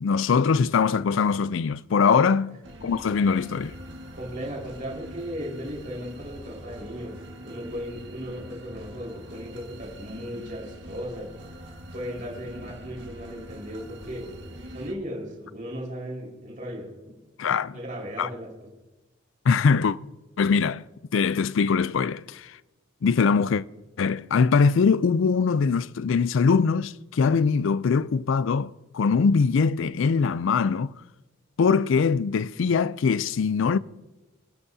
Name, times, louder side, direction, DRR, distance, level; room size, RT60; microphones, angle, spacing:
voice 1, 0.0-2.5 2.8-3.8 17.4-17.7 18.2-18.3 19.5-20.0 20.4-20.8 21.1-22.5 23.0-23.6 24.0-30.9 31.6-33.8, left 5 dB, 70° left, 0.4 m, -22 dB
sound 1, 2.6-14.9, equal, 60° right, 1.8 m, -43 dB
voice 2, 4.1-11.3 11.9-14.3 14.7-16.9 17.7-18.5, equal, 40° right, 4.7 m, -36 dB
26.0 x 9.8 x 2.7 m
head